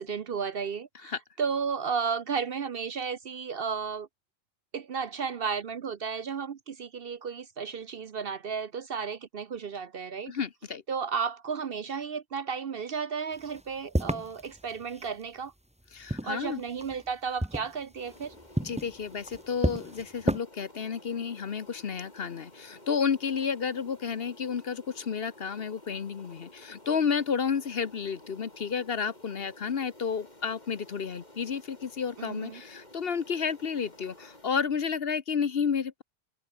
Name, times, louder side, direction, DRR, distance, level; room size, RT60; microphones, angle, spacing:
voice 1, 0.0-4.1 4.7-10.3 10.9-15.5 16.2-18.3 32.2-32.6, right 6 dB, 50° right, 0.9 m, -33 dB
voice 2, 10.3-10.8 15.9-16.6 18.6-36.0, left 6 dB, 50° left, 1.1 m, -31 dB
sound 1, 13.3-15.2 15.8-17.1 17.4-20.4, right 1 dB, 5° right, 1.4 m, -32 dB
sound 2, 17.9-34.5, left 1 dB, 35° left, 5.3 m, -53 dB
omnidirectional pair, 1.3 m